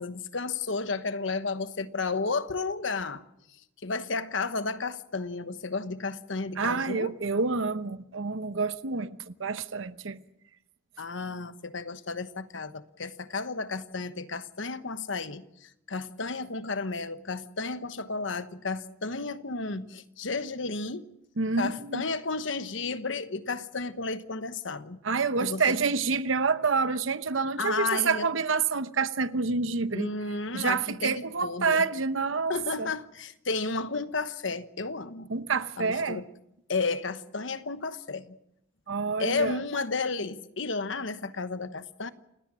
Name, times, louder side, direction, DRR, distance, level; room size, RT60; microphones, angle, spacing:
voice 1, 0.0-3.2 3.8-7.1 11.0-21.1 21.6-25.0 25.4-25.8 27.6-28.3 29.9-31.8 32.5-35.3 35.8-36.2 36.7-38.4 39.2-42.1, left 4 dB, 70° left, 1.1 m, -32 dB
voice 2, 6.6-10.2 21.4-22.0 25.0-30.1 30.5-32.9 35.3-36.2 38.9-39.6, right 4 dB, 80° right, 1.0 m, -28 dB
29.0 x 18.0 x 6.3 m
head